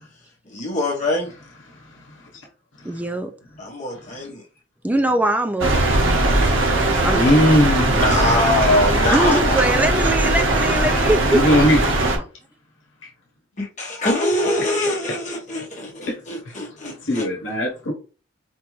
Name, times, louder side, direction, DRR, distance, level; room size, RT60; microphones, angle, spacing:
voice 1, 0.4-1.3 3.6-4.4 6.5-6.6 7.9-10.3 10.7-11.0 13.6-17.3, left 2 dB, 40° left, 1.0 m, -24 dB
voice 2, 2.8-3.3 4.8-6.2 7.0-7.6 9.1-11.6, right 1 dB, 10° right, 0.4 m, -22 dB
sound 1, 5.6-12.2, right 2 dB, 85° right, 0.9 m, -19 dB
voice 3, 7.1-8.1 11.3-12.2 16.1-16.2 17.0-17.9, left 1 dB, 75° left, 1.0 m, -19 dB
4.4 x 2.6 x 3.0 m
head